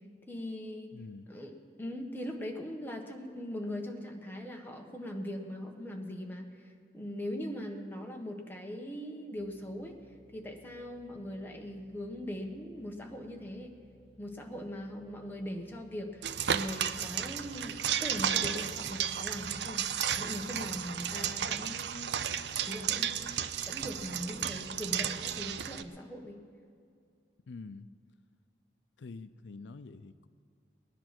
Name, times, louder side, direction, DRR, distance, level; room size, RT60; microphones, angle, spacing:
voice 1, 0.3-0.9 1.3-10.0 10.3-13.8 14.2-22.3 22.7-26.4, equal, 10° left, 1 dB, 1.3 m, -40 dB
voice 2, 0.9-1.3 27.5-27.9 29.0-30.3, left 4 dB, 85° left, 13 dB, 0.5 m, -46 dB
sound 1, 9.3-20.4, equal, 35° left, 3.5 m, -62 dB
sound 2, 16.2-25.8, right 9 dB, 70° right, 0.6 m, -33 dB
20.0 x 10.0 x 6.0 m, 2.3 s
head